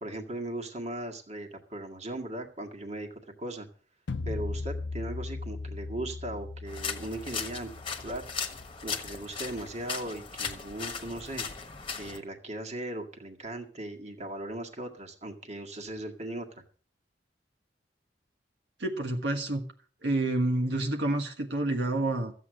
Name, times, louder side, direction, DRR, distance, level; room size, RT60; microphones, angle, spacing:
voice 1, 0.0-3.7 4.3-7.7 8.0-8.3 8.8-11.5 12.0-16.6, right 1 dB, 40° right, 3 dB, 1.9 m, -38 dB
sound 1, 4.1-9.1, left 3 dB, 80° left, 0.6 m, -38 dB
sound 2, 6.7-12.2, left 6 dB, 30° left, 1.4 m, -37 dB
voice 2, 18.8-19.6 20.0-22.3, right 2 dB, 70° right, 3 dB, 1.5 m, -28 dB
14.0 x 8.3 x 6.3 m, 0.42 s
head